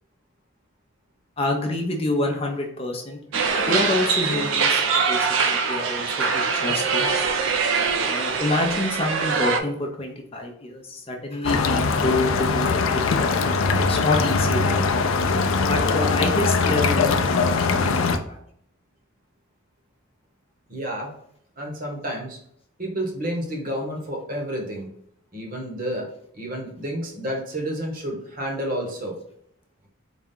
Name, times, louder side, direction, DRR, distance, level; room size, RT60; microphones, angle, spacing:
voice 1, 1.4-3.2 3.7-7.1 8.1-13.5 13.7-14.8 15.7-18.4, left 2 dB, 30° left, 1 dB, 0.6 m, -27 dB
sound 1, 3.3-9.6, right 5 dB, 70° right, 0.5 m, -23 dB
sound 2, 11.4-18.2, left 4 dB, 80° left, 0.4 m, -21 dB
voice 2, 20.7-21.1 21.6-22.4 22.8-24.9 25.3-26.1 26.3-29.2, equal, 45° right, 0 dB, 1.0 m, -30 dB
4.0 x 2.3 x 3.7 m, 0.69 s
head